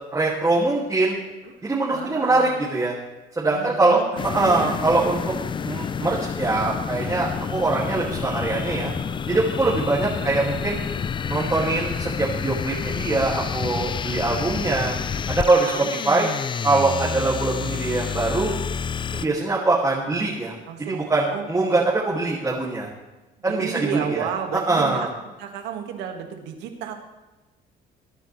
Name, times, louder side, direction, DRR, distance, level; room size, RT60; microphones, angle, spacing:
voice 1, 0.1-1.2 1.6-2.9 3.3-5.3 5.6-8.9 9.3-10.8 11.3-14.9 15.3-16.3 16.6-18.5 19.1-20.5 20.8-22.9 23.4-24.3 24.7-25.1, right 3 dB, 20° right, -5 dB, 2.4 m, -23 dB
voice 2, 1.6-2.6 3.5-4.8 10.0-10.7 15.5-15.9 20.7-21.8 23.5-25.1 25.4-26.9, right 8 dB, 85° right, 4 dB, 2.0 m, -33 dB
sound 1, 4.2-19.3, left 6 dB, 30° left, 0.4 m, -29 dB
21.5 x 10.0 x 3.4 m, 1.1 s
cardioid pair, 110°, 17 cm